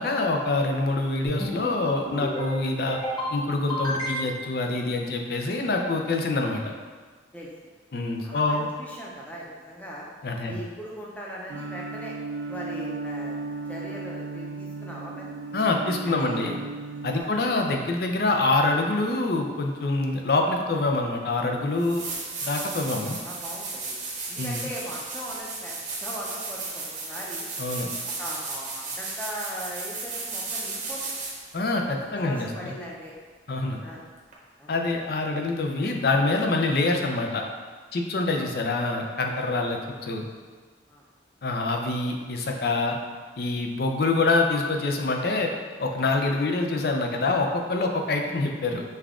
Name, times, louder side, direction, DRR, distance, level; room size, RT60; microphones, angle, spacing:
voice 1, 0.0-3.0 3.3-6.7 7.9-8.7 10.2-10.6 15.5-16.6 17.0-22.0 22.4-23.2 24.4-24.7 27.6-27.9 31.5-32.7 33.5-33.8 34.7-37.4 37.9-40.2 41.4-43.0 43.4-45.5 45.8-48.8, left 2 dB, 55° left, 2 dB, 0.5 m, -25 dB
sound 1, 1.3-1.7 2.1-2.5 2.9-3.3 3.7-4.5, equal, 25° left, 1.2 m, -31 dB
voice 2, 8.2-10.1 10.5-12.1 12.5-15.3 15.8-16.5 17.1-17.3 23.1-24.0 24.3-27.5 28.2-31.0 32.2-33.1 33.8-34.0 34.6-34.7 40.9-41.0, equal, 10° left, -4 dB, 0.6 m, -39 dB
sound 2, 11.5-17.2, right 3 dB, 65° right, 0.3 m, -35 dB
sound 3, 21.3-21.4 21.8-31.5 34.3-34.4, right 3 dB, 40° right, 0.8 m, -34 dB
5.4 x 2.4 x 3.6 m, 1.5 s
head